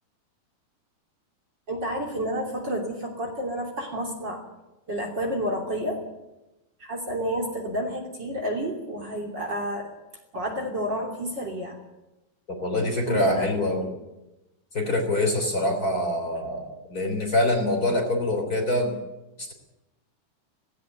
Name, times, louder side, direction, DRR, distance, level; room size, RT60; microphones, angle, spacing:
voice 1, 1.7-4.4 4.9-6.0 6.8-9.9 10.3-11.8 13.1-13.5 13.8-13.9, equal, 35° right, 2 dB, 3.4 m, -30 dB
voice 2, 12.6-13.9 14.7-18.9 19.4-19.5, left 1 dB, 30° left, 4 dB, 3.8 m, -25 dB
18.0 x 17.0 x 9.3 m, 0.97 s
omnidirectional pair, 3.6 m